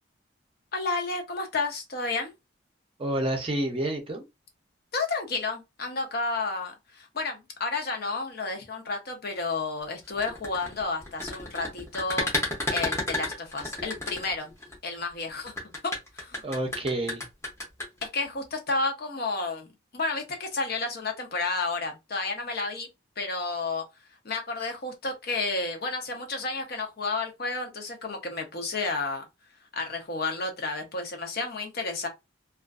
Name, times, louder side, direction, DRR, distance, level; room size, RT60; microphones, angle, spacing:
voice 1, 0.7-2.3 4.9-12.3 12.7-14.5 14.8-15.5 15.8-16.4 18.0-22.9 23.2-23.8 24.2-29.2 29.7-32.1, left 3 dB, 50° left, 0.6 m, -31 dB
voice 2, 3.0-4.2 16.4-17.2, right 1 dB, 30° right, 0.5 m, -29 dB
sound 1, 10.1-14.7 15.5-18.1, left 2 dB, 15° left, 0.7 m, -31 dB
2.4 x 2.3 x 2.3 m
head